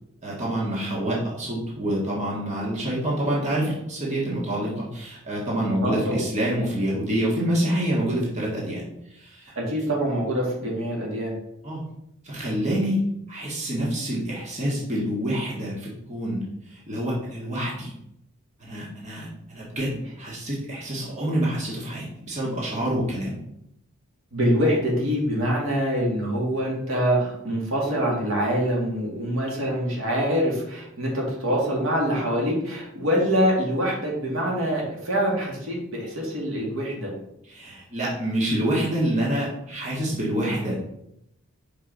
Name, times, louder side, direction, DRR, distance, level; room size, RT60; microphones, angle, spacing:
voice 1, 0.2-8.8 9.1-9.5 11.6-11.9 12.2-13.0 13.3-17.9 18.6-23.4 37.5-40.8, right 1 dB, 30° right, -5 dB, 1.7 m, -27 dB
voice 2, 5.8-6.2 9.6-11.3 24.3-37.1, equal, 75° right, -3 dB, 2.1 m, -25 dB
5.7 x 5.1 x 3.9 m, 0.78 s
head